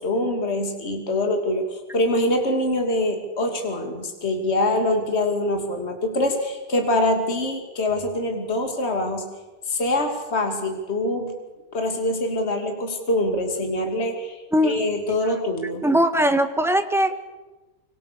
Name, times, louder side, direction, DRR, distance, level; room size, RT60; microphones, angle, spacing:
voice 1, 0.0-9.3 9.7-11.4 11.7-15.8, left 1 dB, 35° left, 4 dB, 3.0 m, -24 dB
voice 2, 15.8-17.2, equal, ahead, 8 dB, 1.5 m, -20 dB
25.0 x 24.5 x 6.9 m, 1.2 s
omnidirectional pair, 1.9 m